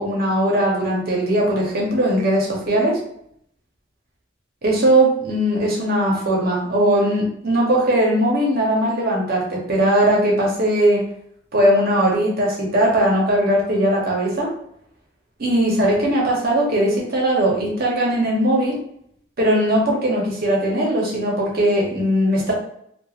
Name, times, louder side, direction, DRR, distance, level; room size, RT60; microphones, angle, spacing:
voice 1, 0.0-3.0 4.6-11.0 11.5-14.5 15.4-18.8 19.4-22.5, right 1 dB, 50° right, -2 dB, 0.8 m, -19 dB
2.9 x 2.2 x 2.4 m, 0.70 s
head